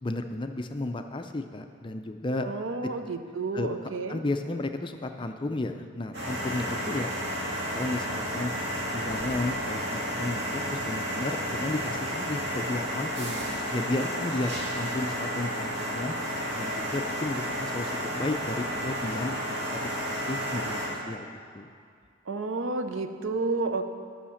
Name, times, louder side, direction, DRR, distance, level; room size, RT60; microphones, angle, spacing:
voice 1, 0.0-2.5 3.0-3.1 3.5-3.7 4.1-7.1 7.7-8.5 8.9-13.4 13.7-16.2 16.5-19.4 19.7-21.7, left 2 dB, 25° left, 6 dB, 0.4 m, -33 dB
voice 2, 2.4-4.2 22.3-23.8, right 3 dB, 75° right, 8 dB, 0.6 m, -31 dB
sound 1, 6.1-20.9, equal, 55° right, 2.9 m, -32 dB
10.0 x 5.7 x 7.1 m, 2.2 s
head